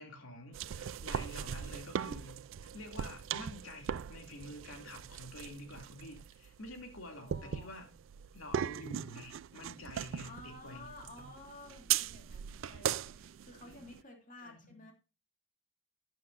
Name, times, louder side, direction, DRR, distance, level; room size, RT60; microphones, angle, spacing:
voice 1, 0.0-7.9 8.3-10.9 11.1-11.3 13.6-13.9 14.4-14.8, left 1 dB, 90° left, 4 dB, 2.6 m, -49 dB
sound 1, 0.5-14.0, right 9 dB, 70° right, 0.4 m, -39 dB
voice 2, 7.2-7.7 10.2-14.9, left 2 dB, 40° left, 2 dB, 2.7 m, -52 dB
12.0 x 9.1 x 2.5 m, 0.31 s
head